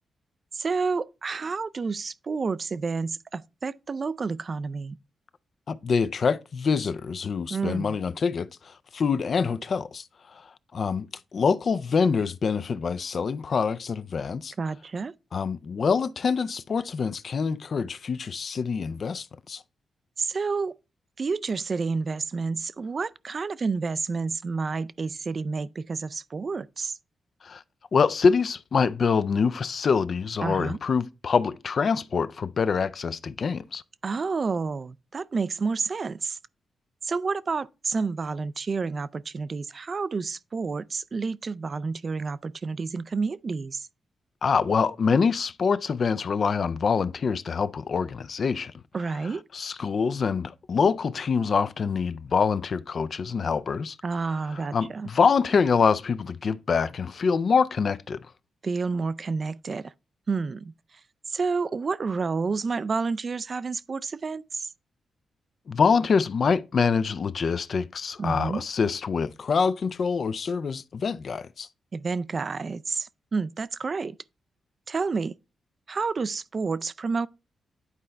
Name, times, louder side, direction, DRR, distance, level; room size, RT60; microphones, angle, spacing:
voice 1, 0.5-5.0 7.5-8.0 14.6-15.1 20.2-20.8 21.2-27.0 30.4-30.8 34.0-36.4 37.0-43.9 48.9-49.4 54.0-55.1 58.6-59.9 60.3-60.7 61.3-64.7 68.2-68.6 71.9-74.2 74.9-75.3 75.9-77.3, right 4 dB, 45° right, 0.3 m, -29 dB
voice 2, 5.7-11.1 11.3-14.5 15.3-19.6 27.4-27.6 27.9-33.8 44.4-48.7 49.2-54.0 54.5-58.2 65.7-71.7, left 5 dB, 55° left, 0.4 m, -25 dB
9.7 x 4.2 x 3.3 m
cardioid pair, 70°, 0 cm